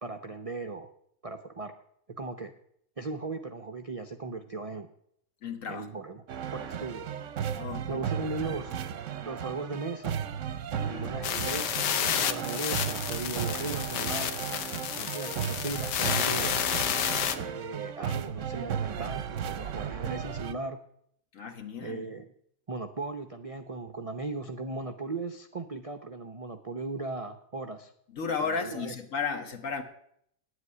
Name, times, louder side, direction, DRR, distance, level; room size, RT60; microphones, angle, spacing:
voice 1, 0.0-0.9 1.2-1.7 2.1-2.5 3.0-4.9 5.7-6.2 6.5-7.1 7.9-8.8 9.2-10.2 10.8-14.3 14.9-16.5 17.3-20.8 21.8-22.3 22.7-27.9 28.4-29.0, right 3 dB, 45° right, 6 dB, 0.4 m, -37 dB
voice 2, 5.4-5.8 7.6-7.9 10.7-11.1 15.0-15.3 21.3-22.0 28.1-29.8, left 5 dB, 55° left, 5 dB, 1.6 m, -34 dB
sound 1, 6.3-20.5, right 8 dB, 60° right, 0.9 m, -35 dB
sound 2, 11.2-17.3, left 9 dB, 90° left, 1.4 m, -30 dB
9.6 x 8.1 x 9.6 m, 0.70 s
omnidirectional pair, 1.7 m